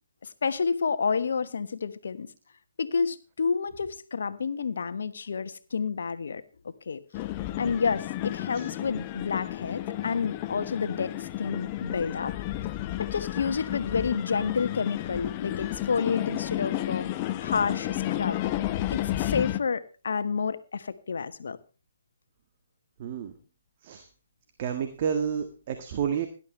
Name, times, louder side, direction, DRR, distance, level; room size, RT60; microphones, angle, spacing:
voice 1, 0.2-2.3 2.8-6.4 6.9-7.0 7.6-12.3 13.0-17.1 17.4-18.4 18.9-21.6, left 5 dB, 65° left, 12 dB, 1.3 m, -29 dB
sound 1, 7.1-19.6, left 14 dB, 30° left, 0.8 m, -32 dB
voice 2, 23.0-23.3 23.8-24.0 24.6-26.3, right 7 dB, 40° right, 8 dB, 1.6 m, -30 dB
17.5 x 11.5 x 3.2 m, 0.34 s
figure-of-eight pair, 140°, 0 cm